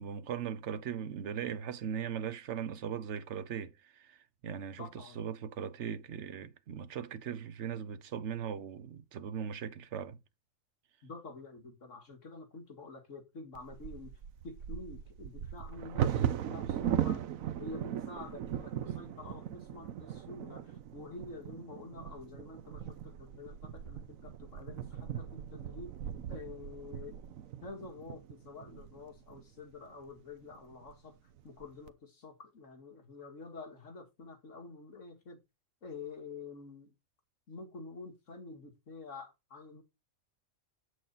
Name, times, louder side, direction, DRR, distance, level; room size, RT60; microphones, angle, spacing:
voice 1, 0.0-4.2 4.4-10.2, right 8 dB, 60° right, 1.1 m, -39 dB
voice 2, 4.8-5.2 11.0-14.1 14.4-17.2 17.6-25.9 26.3-27.2 27.6-31.2 31.4-35.4 35.8-36.9 37.5-39.8, left 3 dB, 60° left, 2.3 m, -48 dB
Bird vocalization bird call bird song / Wind / Thunder, 13.5-29.4 30.1-30.2 30.5-30.9 31.4-31.9, right 10 dB, 75° right, 1.1 m, -38 dB
8.0 x 6.4 x 4.0 m
omnidirectional pair, 1.5 m